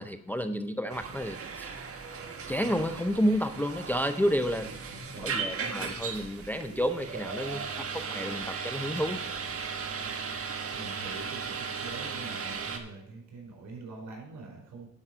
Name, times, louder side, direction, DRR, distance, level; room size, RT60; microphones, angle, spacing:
voice 1, 0.0-1.8 2.5-4.7 5.0-7.7 7.9-9.4, equal, 5° left, 8 dB, 0.5 m, -30 dB
sound 1, 0.9-12.8, right 5 dB, 50° right, 1.4 m, -37 dB
voice 2, 4.9-5.5 10.0-10.2 10.5-14.9, right 3 dB, 65° right, -1 dB, 4.6 m, -44 dB
11.0 x 5.5 x 5.9 m, 0.73 s
cardioid pair, 90°, 30 cm